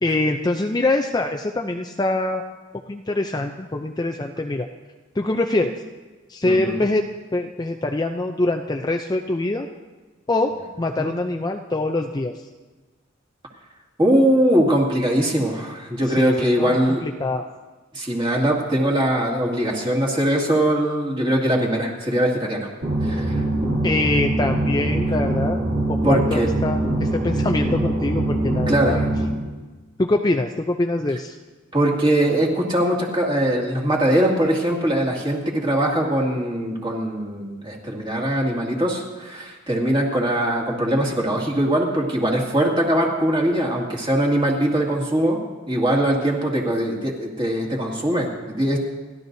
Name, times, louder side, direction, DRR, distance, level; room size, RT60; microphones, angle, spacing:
voice 1, 0.0-2.4 2.9-4.7 5.2-5.7 6.3-7.1 7.3-9.7 10.3-12.4 16.1-17.5 23.8-25.6 25.9-29.0 30.0-31.4, left 2 dB, 20° left, 4 dB, 0.5 m, -24 dB
voice 2, 6.5-6.8 11.0-11.1 14.0-17.0 17.9-22.7 23.0-23.4 26.0-26.5 28.7-29.0 31.7-45.4 45.7-48.8, right 1 dB, 25° right, -2 dB, 2.3 m, -21 dB
sound 1, 22.8-29.3, right 1 dB, 60° right, 3.8 m, -23 dB
29.5 x 12.0 x 2.7 m, 1.3 s
head